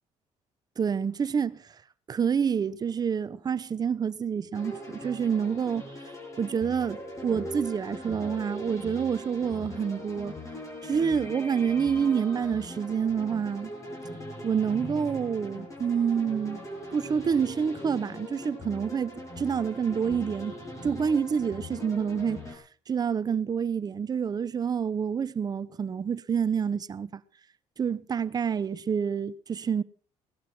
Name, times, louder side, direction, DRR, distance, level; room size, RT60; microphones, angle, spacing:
voice 1, 0.8-1.6 2.1-5.8 6.4-7.0 7.2-10.3 10.8-13.7 14.4-16.7 16.9-22.4 22.9-27.2 27.8-29.8, right 7 dB, 35° right, 0.8 m, -28 dB
sound 1, 4.5-22.6, left 1 dB, 25° left, 6.9 m, -40 dB
18.5 x 12.0 x 6.0 m
cardioid pair, 115°, 12 cm